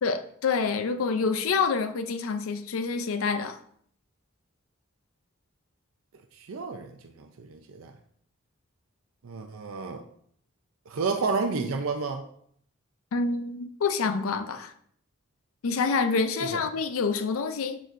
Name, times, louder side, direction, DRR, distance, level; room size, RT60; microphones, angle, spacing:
voice 1, 0.0-3.6 13.1-14.7 15.6-17.8, left 4 dB, 75° left, 0.5 m, -27 dB
voice 2, 6.3-7.9 9.2-10.0 10.9-12.2 16.5-16.6, right 4 dB, 75° right, 0.5 m, -31 dB
6.5 x 6.2 x 2.6 m
head